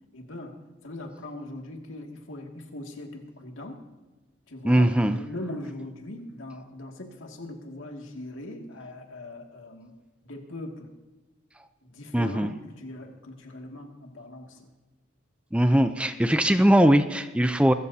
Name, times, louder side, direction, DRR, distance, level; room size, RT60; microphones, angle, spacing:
voice 1, 0.1-3.9 4.5-10.0 10.2-10.9 11.8-14.7, left 1 dB, 80° left, 2 dB, 2.3 m, -40 dB
voice 2, 4.6-5.2 12.1-12.5 15.5-17.7, right 1 dB, 5° right, 9 dB, 0.6 m, -20 dB
25.5 x 14.0 x 2.8 m, 1.2 s
head